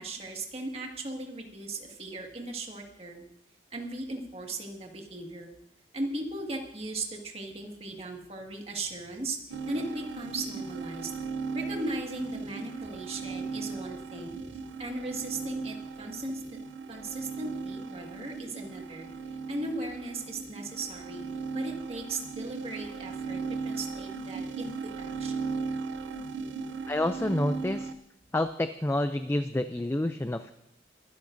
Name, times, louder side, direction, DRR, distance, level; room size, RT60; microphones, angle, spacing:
voice 1, 0.0-3.2 3.7-5.5 5.9-9.4 9.7-11.1 11.5-16.4 16.9-21.2 21.5-25.3, right 2 dB, 35° right, 1 dB, 1.9 m, -37 dB
sound 1, 9.5-27.9, right 4 dB, 85° right, 0.7 m, -37 dB
voice 2, 26.9-27.9 28.3-30.5, left 1 dB, 15° left, 10 dB, 0.4 m, -28 dB
22.5 x 12.5 x 2.7 m, 0.78 s
head